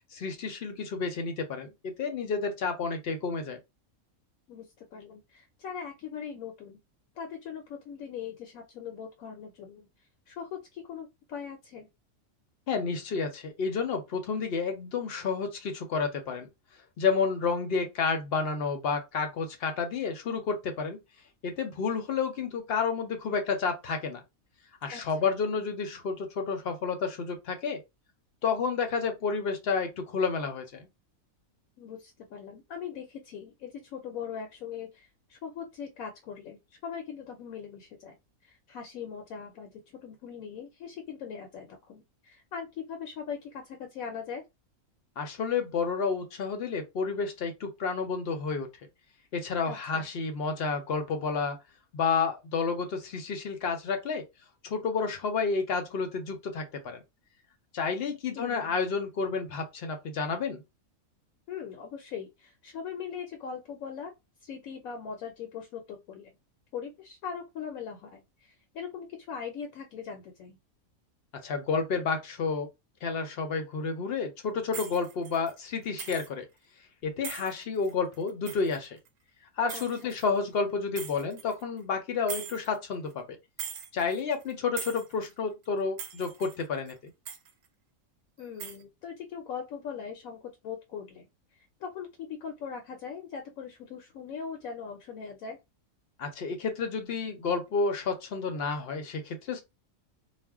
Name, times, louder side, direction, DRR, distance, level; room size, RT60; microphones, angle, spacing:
voice 1, 0.1-3.6 12.7-16.5 17.0-21.0 21.4-24.2 24.8-27.8 28.4-30.9 45.2-48.7 49.3-51.6 51.9-54.2 54.6-57.0 57.7-60.6 71.4-72.7 73.0-76.4 77.0-79.0 79.6-83.2 83.9-87.1 96.2-99.6, left 5 dB, 55° left, 0.7 m, -30 dB
voice 2, 4.5-6.8 7.2-9.9 10.3-11.9 24.9-25.3 31.8-38.2 38.4-44.4 49.6-50.0 58.4-58.8 61.5-64.1 64.4-66.3 66.7-70.6 79.7-80.1 88.4-91.3 91.5-95.6, left 7 dB, 75° left, 1.0 m, -40 dB
sound 1, 74.7-75.6 76.0-76.3 77.2-79.1 79.7-80.3 81.0-81.6 82.3-82.8 83.1-83.2 83.6-84.5 84.8-85.3 85.6-85.7 86.0-86.6 86.9-87.0 87.2-87.5 88.4-88.8, right 7 dB, 70° right, 0.9 m, -40 dB
2.5 x 2.1 x 3.4 m
omnidirectional pair, 1.5 m